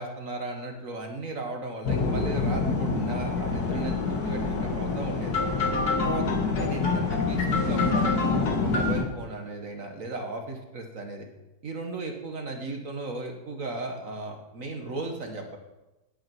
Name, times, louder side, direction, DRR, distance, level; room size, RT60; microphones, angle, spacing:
voice 1, 0.0-5.4 6.0-11.3 11.6-15.6, right 2 dB, 50° right, 3 dB, 2.0 m, -36 dB
sound 1, 1.8-9.0, left 4 dB, 65° left, 2.2 m, -26 dB
9.7 x 8.6 x 9.4 m, 1.0 s
omnidirectional pair, 1.8 m